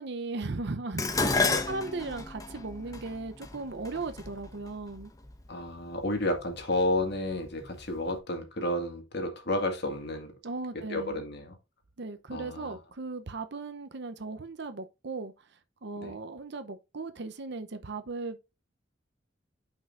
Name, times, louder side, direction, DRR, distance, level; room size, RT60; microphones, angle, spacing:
voice 1, 0.0-5.1 10.4-11.2 12.0-15.5 15.8-18.4, right 3 dB, 60° right, 0.8 m, -37 dB
Dishes pots and pans, 1.0-5.3 6.2-6.6 7.0-8.1, left 3 dB, 20° left, 1.0 m, -31 dB
voice 2, 5.5-10.3 10.9-11.6 12.3-12.8 16.0-16.1, left 1 dB, 60° left, 2.0 m, -31 dB
9.3 x 5.5 x 2.5 m
head